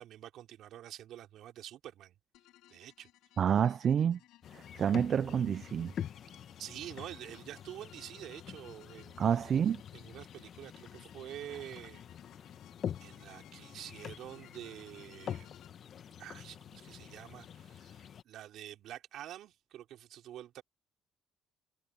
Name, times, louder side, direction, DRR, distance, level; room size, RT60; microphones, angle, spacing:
voice 1, 0.0-2.2 2.7-3.1 6.6-9.2 9.9-12.0 13.0-15.5 16.2-20.6, right 12 dB, 70° right, 3.9 m, -47 dB
sound 1, 2.3-15.7, left 15 dB, 80° left, 4.3 m, -61 dB
voice 2, 3.4-4.2 4.5-5.9 9.2-9.8, right 8 dB, 55° right, 0.5 m, -28 dB
sound 2, 4.4-18.2, left 9 dB, 55° left, 1.3 m, -46 dB
supercardioid pair, 70°, 0 cm